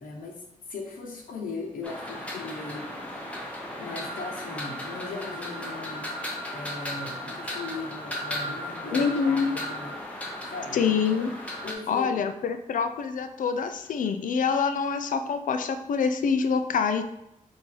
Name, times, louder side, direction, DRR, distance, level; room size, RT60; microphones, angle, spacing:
voice 1, 0.0-6.2 6.5-10.0 10.5-10.8 11.6-12.3, left 3 dB, 85° left, 0 dB, 0.9 m, -39 dB
sound 1, 1.8-11.7, left 1 dB, 10° left, 0.7 m, -36 dB
voice 2, 8.9-9.5 10.7-11.3 11.9-17.0, left 6 dB, 70° left, 8 dB, 0.4 m, -26 dB
3.8 x 2.6 x 4.5 m, 0.82 s
wide cardioid pair, 120°, 14 cm